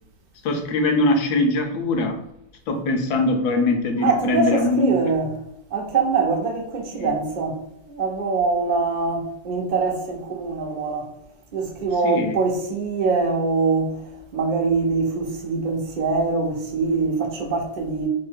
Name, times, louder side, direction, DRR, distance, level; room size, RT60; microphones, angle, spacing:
voice 1, 0.4-2.2 2.7-4.9 7.0-7.1 12.0-12.4, left 2 dB, 70° left, 1.1 m, -22 dB
voice 2, 4.0-5.3 5.7-7.6 7.9-11.1 11.5-18.1, right 4 dB, 65° right, 0.4 m, -23 dB
3.2 x 2.6 x 3.5 m
omnidirectional pair, 1.9 m